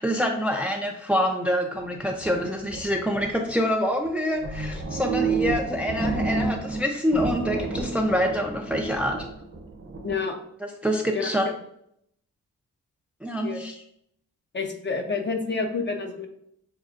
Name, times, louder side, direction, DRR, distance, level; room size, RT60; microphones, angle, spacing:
voice 1, 0.0-9.3 10.6-11.5 13.2-13.7, equal, 5° right, 2 dB, 0.5 m, -26 dB
sound 1, 1.8-3.6 4.1-4.2 4.4-6.8 7.1-10.1, right 4 dB, 45° right, 0.9 m, -30 dB
voice 2, 10.0-10.4 11.1-11.3 13.4-13.6 14.5-16.3, left 4 dB, 35° left, 4 dB, 0.7 m, -28 dB
6.3 x 2.3 x 2.5 m, 0.72 s
cardioid pair, 65°, 33 cm